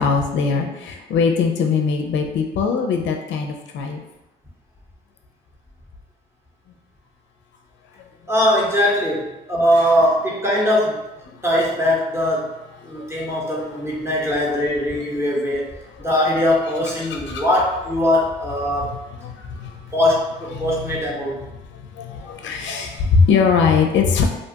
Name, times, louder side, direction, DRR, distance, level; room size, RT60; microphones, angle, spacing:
voice 1, 0.0-4.0 13.0-13.1 16.0-16.1 17.1-17.4 19.2-19.8 20.5-21.0 22.0-24.2, left 5 dB, 70° left, 3 dB, 0.4 m, -21 dB
voice 2, 8.3-11.0 11.4-12.5 12.8-15.6 16.0-18.9 19.9-21.3, left 1 dB, 15° right, -4 dB, 0.9 m, -20 dB
2.6 x 2.3 x 2.7 m, 0.96 s
cardioid pair, 90°, 20 cm